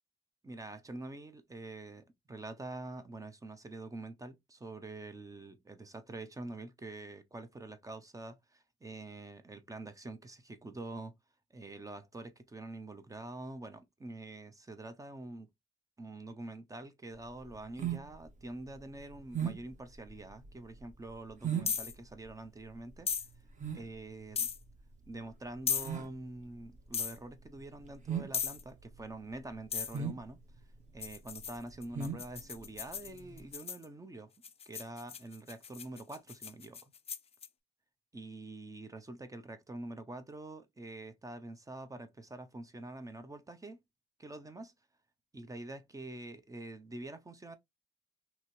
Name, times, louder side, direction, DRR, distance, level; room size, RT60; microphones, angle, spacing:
voice 1, 0.4-11.1 11.5-15.5 16.0-23.1 23.7-24.5 25.1-30.4 30.9-34.3 34.7-36.9 38.1-43.8 44.2-44.7 45.3-47.6, right 2 dB, 15° right, 0.7 m, -46 dB
sound 1, 17.2-33.5, right 7 dB, 40° right, 1.0 m, -40 dB
sound 2, 21.6-21.9 23.1-23.3 24.3-24.6 25.7-25.9 26.9-27.2 28.3-28.6 29.7-30.0 31.0-33.8 34.4-37.5, left 7 dB, 30° left, 0.4 m, -36 dB
3.0 x 2.9 x 2.6 m
cardioid pair, 90°, 20 cm